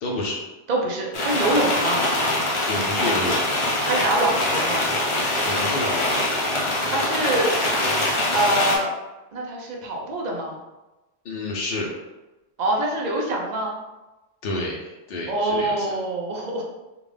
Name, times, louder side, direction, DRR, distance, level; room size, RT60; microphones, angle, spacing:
voice 1, 0.0-0.4 2.7-3.5 5.4-6.3 11.2-11.9 14.4-15.9, left 2 dB, 65° left, -3 dB, 0.7 m, -29 dB
voice 2, 0.7-2.0 3.9-4.9 6.9-7.5 8.3-8.9 9.3-10.6 12.6-13.8 15.3-16.6, right 1 dB, 45° right, -1 dB, 0.7 m, -24 dB
sound 1, 1.1-8.8, left 1 dB, 35° left, 0.6 m, -23 dB
3.5 x 2.4 x 3.3 m, 1.1 s
omnidirectional pair, 1.2 m